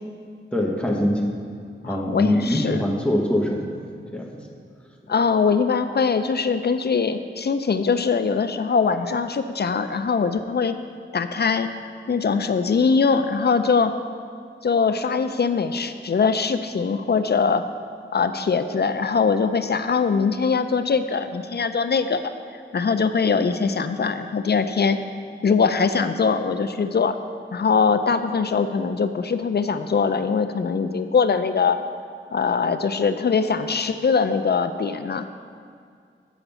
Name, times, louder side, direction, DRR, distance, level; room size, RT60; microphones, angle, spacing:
voice 1, 0.5-1.3 1.8-3.8 4.1-4.4, equal, 5° left, -1 dB, 1.0 m, -23 dB
voice 2, 1.8-2.8 5.1-10.8 11.1-11.7 12.1-13.9 14.6-17.6 18.1-22.2 22.5-25.0 25.4-27.2 27.5-31.8 32.3-35.3, left 5 dB, 55° left, 10 dB, 0.4 m, -22 dB
7.1 x 5.0 x 6.9 m, 2.2 s
wide cardioid pair, 90°, 20 cm